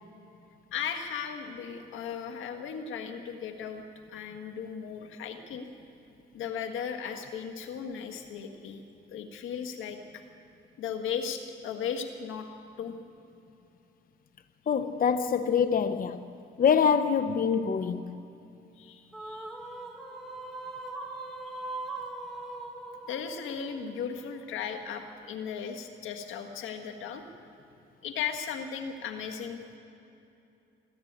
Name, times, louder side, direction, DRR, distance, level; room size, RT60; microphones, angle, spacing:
voice 1, 0.7-3.8 4.1-5.7 6.3-8.8 9.1-10.2 10.8-12.5 12.8-13.0 18.8-19.5 21.2-21.4 21.7-21.8 23.1-27.2 28.0-29.8, left 7 dB, 85° left, 1.7 m, -36 dB
voice 2, 14.7-16.2 16.6-18.2, left 6 dB, 45° left, 0.8 m, -25 dB
sound 1, 19.1-24.6, right 2 dB, ahead, 3.1 m, -40 dB
25.0 x 12.5 x 8.9 m
cardioid pair, 90°, 20 cm